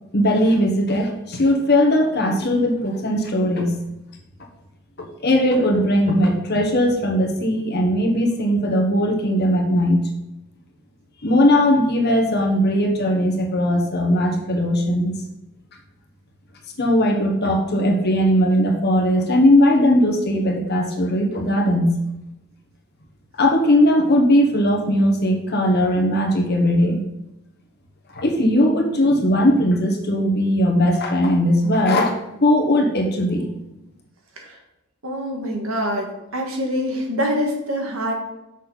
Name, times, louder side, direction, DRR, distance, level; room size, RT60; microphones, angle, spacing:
voice 1, 0.1-3.7 5.0-10.0 11.2-15.1 16.8-22.0 23.4-27.0 28.1-33.5, equal, 55° left, 2 dB, 1.3 m, -19 dB
voice 2, 35.0-38.1, equal, 80° right, 1 dB, 1.7 m, -25 dB
6.6 x 6.3 x 4.1 m, 0.92 s
head